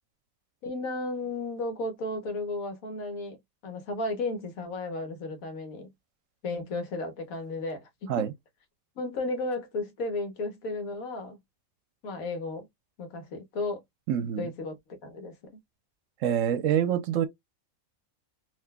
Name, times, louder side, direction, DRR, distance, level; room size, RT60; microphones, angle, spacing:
voice 1, 0.6-3.4 3.6-5.9 6.4-8.3 9.0-11.4 12.0-12.7 13.0-13.8 14.4-15.6, left 2 dB, 80° left, 1.4 m, -34 dB
voice 2, 14.1-14.5 16.2-17.3, right 9 dB, 70° right, 0.9 m, -26 dB
3.7 x 2.7 x 2.2 m
omnidirectional pair, 1.5 m